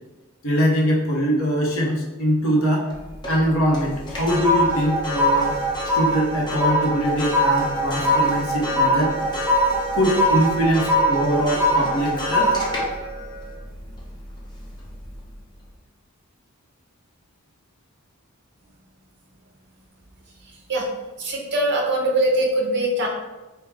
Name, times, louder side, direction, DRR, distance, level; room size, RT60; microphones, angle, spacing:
voice 1, 0.4-2.9 3.3-5.6 5.9-9.2 9.9-12.6, equal, 65° left, -1 dB, 0.9 m, -22 dB
sound 1, 2.9-3.4 3.7-14.3 14.8-15.1, equal, 20° left, 0.7 m, -22 dB
voice 2, 21.2-23.1, right 1 dB, 55° right, 0 dB, 0.7 m, -22 dB
4.6 x 2.2 x 3.5 m, 1.1 s
head